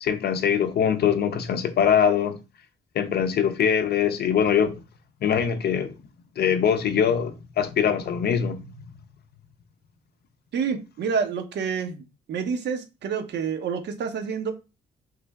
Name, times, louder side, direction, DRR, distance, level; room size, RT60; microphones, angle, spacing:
voice 1, 0.0-2.4 2.9-4.8 5.2-5.9 6.4-9.0, left 8 dB, 55° left, 0.5 m, -23 dB
voice 2, 10.5-12.0 12.3-14.5, right 6 dB, 60° right, 0.7 m, -28 dB
3.2 x 2.1 x 3.4 m
cardioid pair, 90°, 20 cm